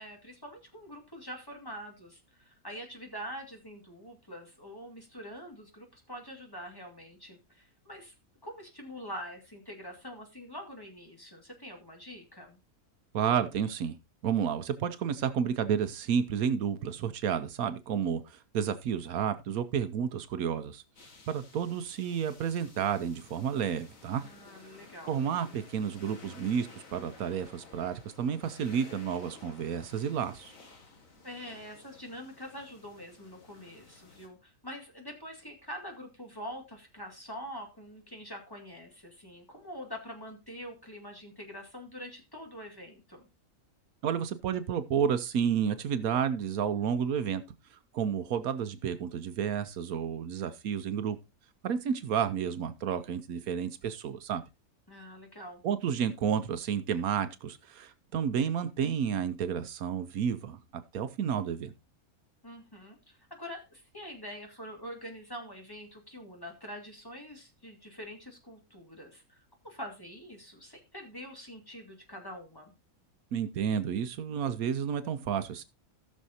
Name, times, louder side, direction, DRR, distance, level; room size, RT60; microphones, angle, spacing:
voice 1, 0.0-8.1 8.4-12.6 24.2-25.1 31.2-43.3 54.9-55.6 62.4-69.4 69.6-72.7, equal, 15° left, 2.1 m, -45 dB
voice 2, 13.1-14.0 14.2-20.8 21.3-24.2 25.1-30.5 44.0-47.4 47.9-51.2 51.6-54.4 55.6-61.7 73.3-75.6, right 8 dB, 75° right, 1.2 m, -31 dB
sound 1, 21.0-34.3, left 3 dB, 65° left, 2.2 m, -54 dB
17.5 x 6.3 x 2.8 m
omnidirectional pair, 1.5 m